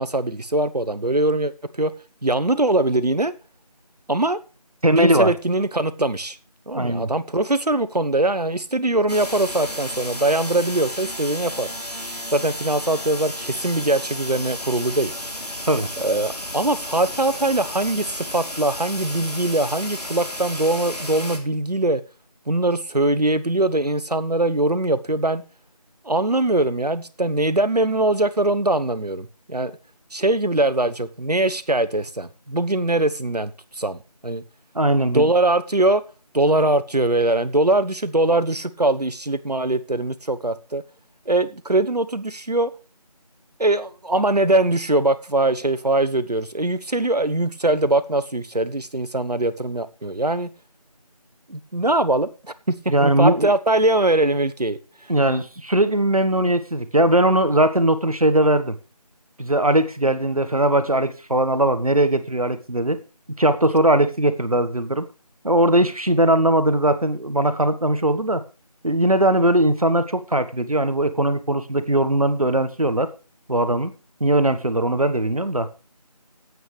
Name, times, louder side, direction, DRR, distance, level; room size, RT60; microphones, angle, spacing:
voice 1, 0.0-1.5 1.8-1.9 2.2-3.3 4.1-4.4 4.9-6.4 6.7-11.7 12.3-15.1 16.0-22.0 22.5-25.4 26.0-29.7 30.1-34.4 35.1-36.0 36.3-40.8 41.3-42.7 43.6-50.5 51.5-55.1, right 2 dB, 80° right, 1.1 m, -22 dB
voice 2, 4.8-5.3 6.7-7.1 15.7-15.9 34.7-35.3 52.9-53.5 55.1-58.7 59.4-63.0 63.4-65.0 65.4-68.4 68.8-73.1 73.5-73.9 74.2-75.7, right 1 dB, 65° right, 1.3 m, -19 dB
sound 1, 9.1-21.4, equal, 80° left, 3.3 m, -33 dB
14.5 x 9.2 x 3.3 m
figure-of-eight pair, 175°, 20 cm